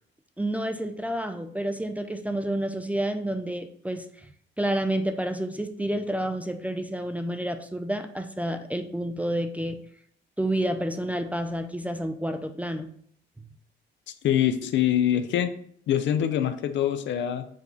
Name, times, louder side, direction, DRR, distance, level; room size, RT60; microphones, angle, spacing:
voice 1, 0.4-4.3 4.6-9.8 10.4-12.9, right 1 dB, 5° right, 6 dB, 0.3 m, -29 dB
voice 2, 14.2-15.5 15.9-17.4, left 10 dB, 70° left, 10 dB, 0.5 m, -24 dB
4.8 x 2.3 x 3.9 m, 0.62 s
cardioid pair, 90°, 20 cm